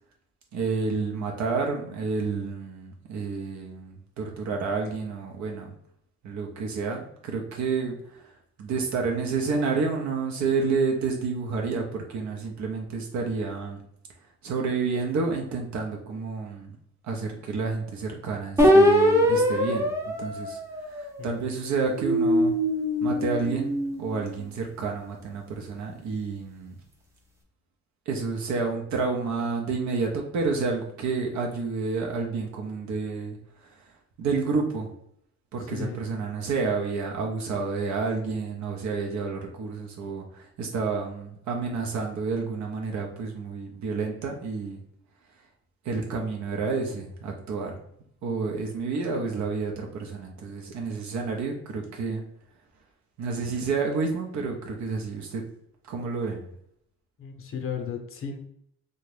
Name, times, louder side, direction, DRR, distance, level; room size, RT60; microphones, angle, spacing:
voice 1, 0.5-5.7 6.2-8.2 8.6-13.8 14.4-16.8 17.0-20.6 20.9-22.5 23.0-26.8 28.1-33.4 34.2-34.9 35.5-44.8 45.8-47.7 48.2-52.2 53.2-55.4 55.8-56.4, right 4 dB, 65° right, 1 dB, 0.6 m, -29 dB
sound 1, 18.6-21.3 21.9-24.3, equal, 10° right, 0.6 m, -22 dB
voice 2, 35.7-36.0 57.2-58.4, left 6 dB, 45° left, 4 dB, 0.6 m, -34 dB
2.5 x 2.2 x 3.2 m, 0.70 s
cardioid pair, 90°, 30 cm